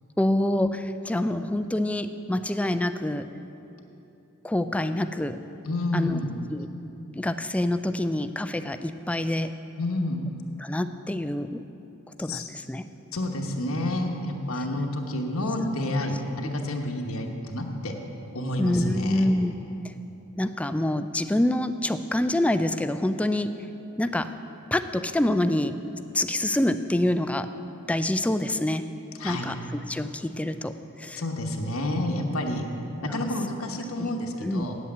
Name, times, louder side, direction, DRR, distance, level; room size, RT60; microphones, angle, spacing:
voice 1, 0.2-3.3 4.4-5.4 5.9-6.2 6.5-6.7 7.1-9.5 10.6-11.6 12.2-12.8 18.6-19.5 19.8-19.9 20.4-23.5 24.0-24.3 24.7-25.8 26.1-27.5 27.9-28.8 29.2-30.7 31.0-31.2 33.1-33.2 34.0-34.1 34.4-34.7, left 1 dB, 5° left, 10 dB, 0.3 m, -26 dB
voice 2, 5.6-6.3 9.8-10.2 12.3-12.5 13.1-17.9 18.3-19.3 29.2-29.5 31.2-32.7 33.0-34.7, left 1 dB, 80° left, 2 dB, 1.1 m, -29 dB
8.4 x 8.0 x 8.5 m, 3.0 s
head